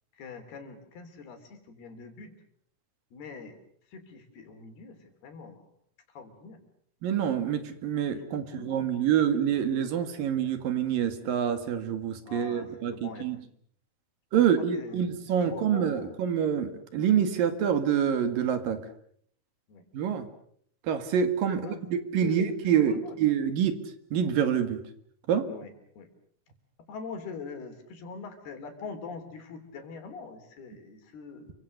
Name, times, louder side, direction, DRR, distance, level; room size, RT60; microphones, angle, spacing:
voice 1, 0.2-2.3 3.1-3.6 3.9-5.0 5.2-5.7 6.2-6.6 8.1-8.9 12.3-13.3 14.7-15.1 15.3-16.2 19.7-19.8 21.5-21.8 22.2-23.1 25.5-26.1 26.9-31.5, left 4 dB, 85° left, 6 dB, 5.3 m, -43 dB
voice 2, 7.0-13.4 14.3-18.8 19.9-20.3 20.9-23.7 24.1-24.8 25.3-25.5, right 8 dB, 65° right, 10 dB, 3.5 m, -26 dB
29.0 x 24.5 x 6.6 m, 0.64 s
omnidirectional pair, 4.4 m